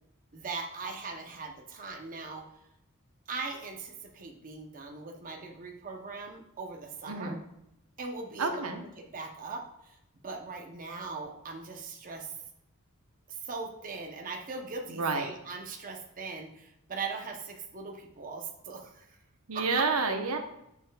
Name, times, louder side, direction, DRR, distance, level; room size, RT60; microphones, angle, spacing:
voice 1, 0.3-2.4 3.3-7.4 8.0-8.5 9.1-9.9 10.2-12.3 13.3-19.1 19.8-19.9, right 4 dB, 40° right, 1 dB, 0.8 m, -40 dB
voice 2, 7.1-7.4 8.4-8.8 14.9-15.3 19.5-20.4, right 4 dB, 75° right, 5 dB, 0.9 m, -29 dB
9.7 x 6.5 x 2.3 m, 0.82 s
head